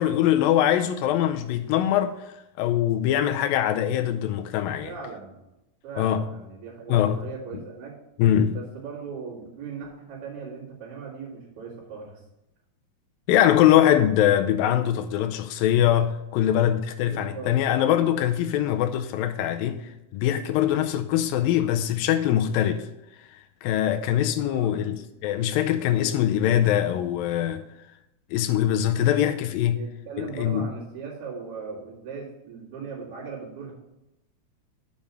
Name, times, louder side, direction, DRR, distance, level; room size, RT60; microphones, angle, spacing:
voice 1, 0.0-4.9 6.0-6.2 6.9-7.2 8.2-8.6 13.3-22.9 23.6-27.6 28.3-29.8 30.2-30.7, left 11 dB, 80° left, 2.2 m, -23 dB
voice 2, 4.8-5.4 5.8-8.0 8.5-12.2 17.0-17.5 21.1-21.3 24.5-24.7 29.7-33.7, right 5 dB, 60° right, 3.6 m, -39 dB
7.2 x 5.3 x 7.0 m
omnidirectional pair, 4.3 m